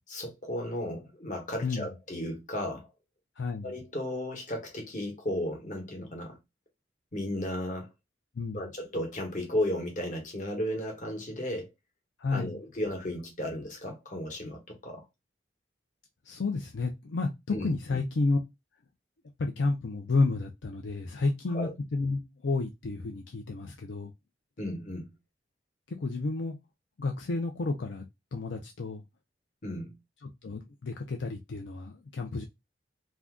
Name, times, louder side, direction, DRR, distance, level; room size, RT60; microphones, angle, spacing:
voice 1, 0.1-2.9 3.6-6.4 7.1-7.9 8.5-11.7 12.3-15.1 17.5-18.0 21.5-21.7 24.6-25.1 29.6-29.9, left 1 dB, 40° left, 1.0 m, -34 dB
voice 2, 3.4-3.7 8.3-8.7 12.2-12.6 16.3-18.4 19.4-24.1 25.9-26.6 27.0-28.0 28.3-29.0 30.2-32.4, left 3 dB, 75° left, 0.5 m, -31 dB
2.6 x 2.3 x 3.5 m
head